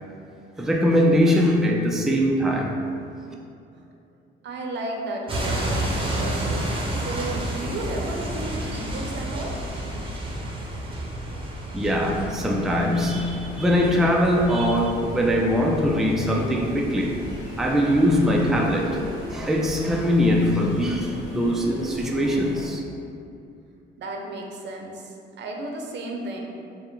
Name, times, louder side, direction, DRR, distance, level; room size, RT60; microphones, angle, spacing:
voice 1, 0.6-2.8 11.7-17.2 17.6-19.0 19.3-22.8, equal, ahead, -1 dB, 0.4 m, -22 dB
voice 2, 4.4-6.6 6.9-9.5 24.0-26.4, right 2 dB, 60° right, 1 dB, 0.6 m, -33 dB
sound 1, 5.3-21.0, right 1 dB, 25° right, 0.7 m, -32 dB
sound 2, 11.9-22.7, left 1 dB, 75° left, 1.0 m, -39 dB
4.4 x 2.1 x 3.8 m, 2.6 s
cardioid pair, 90°, 20 cm